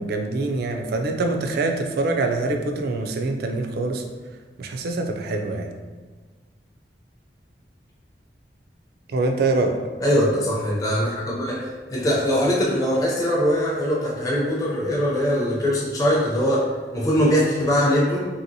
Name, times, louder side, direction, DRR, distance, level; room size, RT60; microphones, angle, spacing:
voice 1, 0.0-4.0 4.6-5.7 9.1-9.8, right 2 dB, 60° right, 4 dB, 0.3 m, -24 dB
voice 2, 10.0-16.7 16.9-18.3, equal, 20° left, -5 dB, 0.5 m, -21 dB
2.9 x 2.7 x 2.6 m, 1.4 s
head